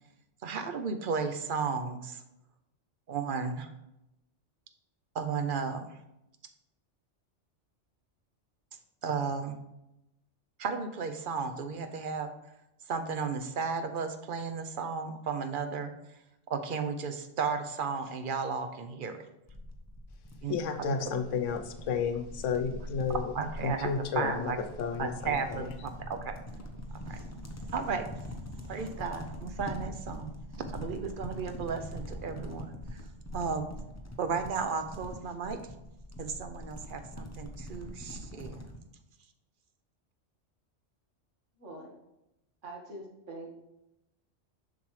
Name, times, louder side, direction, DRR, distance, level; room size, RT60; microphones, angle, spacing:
voice 1, 0.4-2.2 3.1-3.7 5.1-6.0 9.0-9.6 10.6-12.3 12.9-19.3 20.4-21.2 23.3-24.6 25.0-26.4 26.9-27.2 27.7-28.1 28.7-30.3 30.7-33.1 33.3-33.7 34.2-35.6 36.2-38.6, right 5 dB, 55° right, 8 dB, 0.7 m, -34 dB
sound 1, 19.5-38.8, equal, 15° left, 0.6 m, -43 dB
voice 2, 20.5-23.2 23.6-24.5 24.8-25.4, left 6 dB, 90° left, 8 dB, 1.0 m, -31 dB
voice 3, 41.6-41.9 42.6-43.5, right 2 dB, 80° right, 0 dB, 1.8 m, -44 dB
7.1 x 6.0 x 3.2 m, 0.89 s
omnidirectional pair, 1.2 m